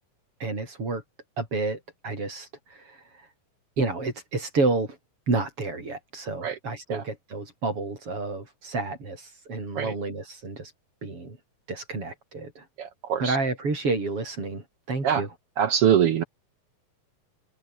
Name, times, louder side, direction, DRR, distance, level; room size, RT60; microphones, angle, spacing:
voice 1, 0.4-1.0 1.4-3.3 3.8-5.0 5.3-10.7 11.0-11.4 11.7-12.7 13.2-15.3, right 3 dB, 45° right, 7.4 m, -30 dB
voice 2, 12.8-13.4 15.0-15.2 15.6-16.2, right 9 dB, 60° right, 1.6 m, -23 dB
omnidirectional pair, 3.6 m